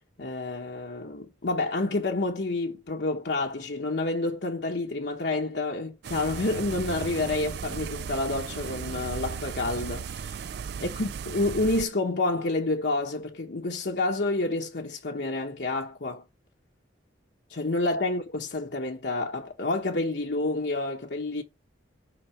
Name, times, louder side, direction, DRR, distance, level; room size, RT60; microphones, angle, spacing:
voice 1, 0.2-10.5 10.8-16.2 17.5-21.4, left 2 dB, 60° left, 1.0 m, -29 dB
sound 1, 6.0-11.9, right 6 dB, 55° right, 0.3 m, -36 dB
6.0 x 5.3 x 5.9 m
head